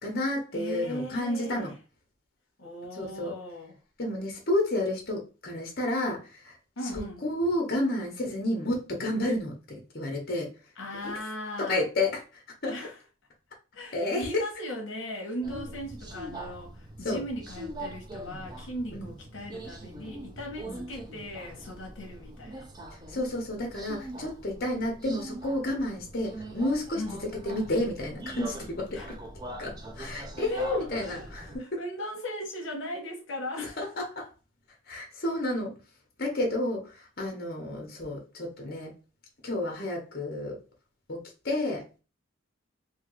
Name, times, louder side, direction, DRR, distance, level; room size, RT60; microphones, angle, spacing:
voice 1, 0.0-1.7 2.9-3.4 4.0-6.6 6.9-10.5 11.0-11.2 11.6-12.8 13.9-14.4 17.0-17.2 18.9-19.1 20.6-20.8 23.1-29.2 29.6-31.8 33.6-34.3 34.9-35.8 36.2-38.9 39.4-40.6 41.1-41.8, left 1 dB, 50° left, 1.0 m, -31 dB
voice 2, 0.5-1.7 2.6-3.8 6.8-7.2 10.8-11.8 12.6-13.0 13.7-22.7 27.0-27.2 28.9-29.1 30.5-31.3 31.6-33.8, equal, 75° left, 0.9 m, -38 dB
Subway metro underground, 15.4-31.6, right 1 dB, 20° right, 0.4 m, -42 dB
3.1 x 2.3 x 3.1 m
head